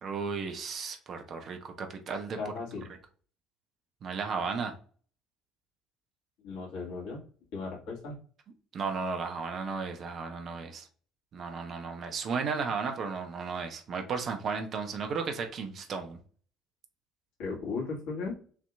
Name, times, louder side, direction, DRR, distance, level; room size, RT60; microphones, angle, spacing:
voice 1, 0.0-2.4 4.0-4.7 8.7-10.9 11.3-16.2, right 5 dB, 50° right, 5 dB, 0.8 m, -34 dB
voice 2, 2.4-2.9 6.4-7.2 7.5-8.2 17.4-18.3, left 4 dB, 70° left, -2 dB, 1.7 m, -36 dB
6.9 x 2.9 x 2.4 m, 0.42 s
figure-of-eight pair, 55°, 0 cm